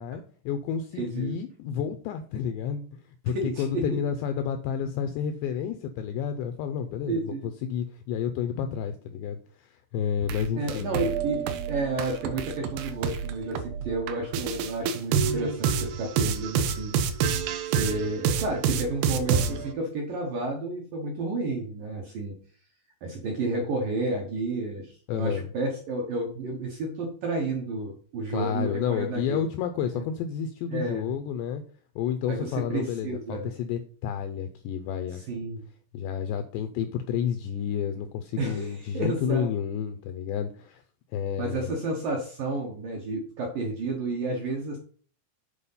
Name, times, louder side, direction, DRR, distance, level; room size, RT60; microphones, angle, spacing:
voice 1, 0.0-2.8 3.2-7.2 7.6-11.2 25.1-25.4 28.3-31.6 32.0-35.2 35.9-40.8 41.1-41.7, left 8 dB, 85° left, 8 dB, 2.5 m, -30 dB
voice 2, 1.0-1.4 3.3-4.0 7.1-7.5 10.6-16.9 17.6-22.4 23.0-29.4 29.9-30.0 30.7-31.1 32.3-33.5 35.1-35.6 38.4-39.5 41.4-44.8, right 2 dB, 70° right, 0 dB, 2.1 m, -31 dB
sound 1, 10.2-19.7, right 7 dB, 90° right, 2.2 m, -28 dB
8.5 x 4.9 x 5.5 m, 0.44 s
omnidirectional pair, 5.7 m